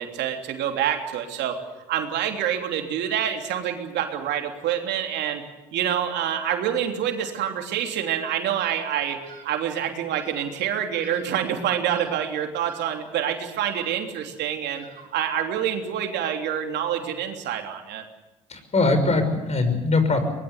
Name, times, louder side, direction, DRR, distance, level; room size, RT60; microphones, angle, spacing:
voice 1, 0.0-1.6 1.9-5.4 5.7-14.8 15.1-18.0, right 9 dB, 65° right, 4 dB, 3.3 m, -27 dB
Bird vocalization bird call bird song, 8.6-9.0 9.2-9.7 10.1-10.6 11.0-11.5 11.8-12.3 12.7-13.2 13.6-14.1 14.7-15.3, right 5 dB, 45° right, 5.6 m, -48 dB
voice 2, 18.5-20.2, left 3 dB, 35° left, 8 dB, 6.0 m, -21 dB
23.5 x 21.0 x 8.2 m, 1.0 s
hypercardioid pair, 65°, 19 cm